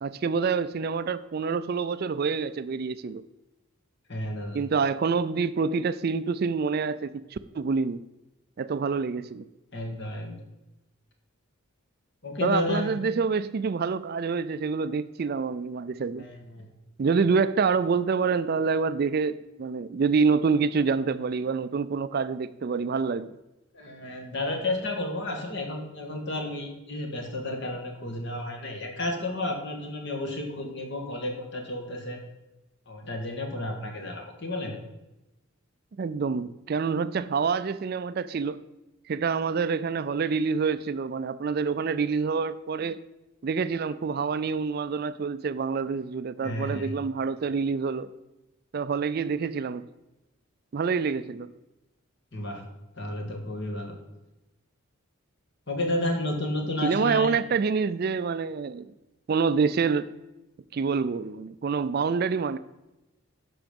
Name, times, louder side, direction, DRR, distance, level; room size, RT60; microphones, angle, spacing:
voice 1, 0.0-3.2 4.5-8.0 8.6-9.4 12.4-16.3 17.0-23.4 36.0-38.6 39.1-43.0 43.4-48.1 48.7-49.9 50.7-51.5 56.8-58.9 59.3-60.1 60.7-62.6, right 5 dB, 45° right, 14 dB, 0.4 m, -27 dB
voice 2, 4.1-4.6 9.7-10.4 12.2-12.9 16.2-16.7 23.7-32.2 32.9-34.8 46.4-46.9 52.3-52.6 52.9-53.9 55.7-57.3, left 1 dB, 55° left, 2 dB, 1.8 m, -32 dB
10.5 x 6.2 x 5.3 m, 1.0 s
head